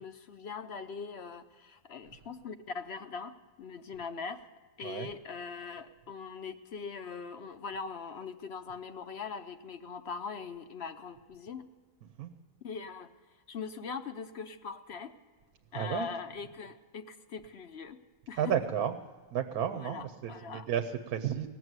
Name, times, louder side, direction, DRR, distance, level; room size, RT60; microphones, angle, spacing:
voice 1, 0.0-4.4 4.8-11.7 12.6-13.1 13.5-15.1 15.7-18.0 18.3-18.5 19.7-20.7, left 5 dB, 55° left, 9 dB, 0.8 m, -41 dB
voice 2, 15.7-16.1 18.4-19.0 19.3-21.5, right 9 dB, 85° right, 8 dB, 1.3 m, -32 dB
18.5 x 7.7 x 9.4 m, 1.4 s
omnidirectional pair, 1.5 m